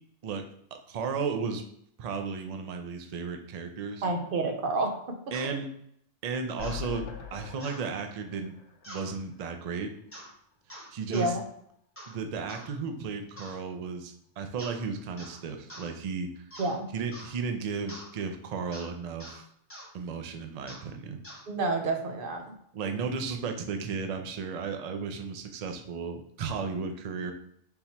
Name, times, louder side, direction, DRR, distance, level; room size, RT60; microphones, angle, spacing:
voice 1, 0.9-1.6 2.0-4.1 5.3-5.7 6.2-8.6 8.9-9.9 10.9-11.4 12.1-16.4 16.9-19.4 19.9-21.2 22.7-27.3, right 5 dB, 85° right, 5 dB, 0.3 m, -34 dB
voice 2, 4.0-4.9 11.1-11.4 16.6-16.9 21.5-22.4, right 2 dB, 55° right, 4 dB, 0.8 m, -29 dB
sound 1, 5.3-5.5 6.6-6.8 7.6-7.8 8.8-9.1 10.1-10.3 10.7-11.3 12.0-12.2 12.5-12.7 13.4-13.6 14.6-14.8 15.2-15.4 15.7-15.9 16.5-16.8 17.1-17.3 17.9-18.1 18.7-18.9 19.2-19.4 19.7-19.9 20.7-20.9 21.2-21.4, equal, 10° left, 0.9 m, -45 dB
sound 2, 6.6-9.8 10.2-10.3 10.5-10.6, left 8 dB, 70° left, 0.8 m, -42 dB
3.8 x 2.9 x 4.1 m, 0.70 s
omnidirectional pair, 1.3 m